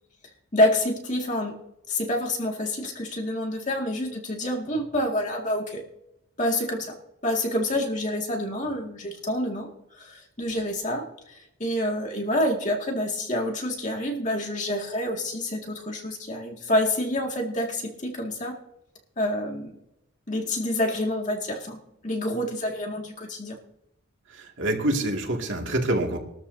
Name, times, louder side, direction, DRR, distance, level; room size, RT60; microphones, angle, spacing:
voice 1, 0.5-1.5 1.9-5.8 6.4-6.9 7.2-9.7 10.0-18.6 19.2-19.7 20.3-23.6, left 1 dB, 35° left, 1 dB, 2.1 m, -27 dB
voice 2, 24.3-26.2, right 1 dB, 60° right, 1 dB, 2.2 m, -26 dB
20.0 x 13.0 x 2.7 m, 0.84 s
head